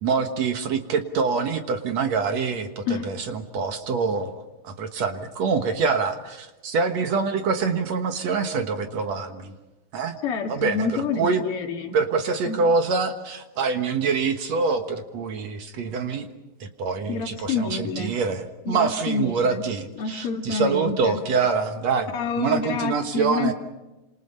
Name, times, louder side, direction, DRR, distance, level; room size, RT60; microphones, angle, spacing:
voice 1, 0.0-9.6 9.9-10.2 10.5-11.4 11.9-16.3 16.6-23.5, right 5 dB, 60° right, 7 dB, 2.4 m, -25 dB
voice 2, 2.9-3.2 10.2-12.0 12.4-12.6 17.1-18.1 18.7-19.6 20.0-21.2 22.1-23.5, left 5 dB, 50° left, 1 dB, 2.4 m, -28 dB
29.0 x 27.0 x 5.6 m, 1.1 s
omnidirectional pair, 3.8 m